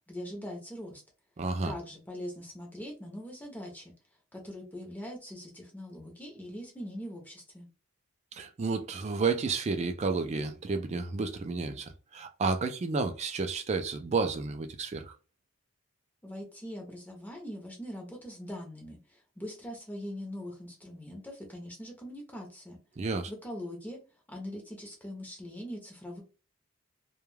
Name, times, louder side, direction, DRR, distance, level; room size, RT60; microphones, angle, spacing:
voice 1, 0.1-1.0 1.6-3.9 4.3-7.7 16.2-22.8 23.3-24.0 24.3-26.2, equal, 10° left, 0.6 m, -42 dB
voice 2, 1.4-1.7 8.4-15.1 23.0-23.3, right 4 dB, 30° right, 0.3 m, -31 dB
2.2 x 2.2 x 3.1 m
head